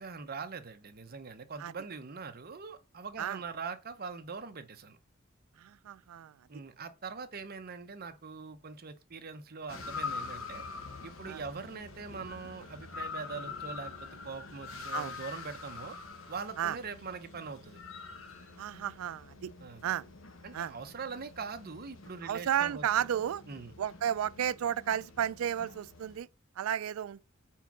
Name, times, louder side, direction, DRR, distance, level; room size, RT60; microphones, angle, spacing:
voice 1, 0.0-5.0 6.5-10.6 11.0-16.0 16.3-17.8 19.6-19.9 20.4-22.9 23.5-23.7, right 5 dB, 50° right, 0.8 m, -42 dB
voice 2, 5.6-6.4 11.3-11.4 14.9-15.1 16.6-16.8 18.6-19.5 19.8-20.1 20.5-20.7 22.2-23.4 23.8-26.3 26.6-27.2, right 9 dB, 90° right, 0.3 m, -33 dB
sound 1, 9.7-26.2, left 5 dB, 85° left, 1.0 m, -45 dB
4.6 x 4.5 x 5.9 m
head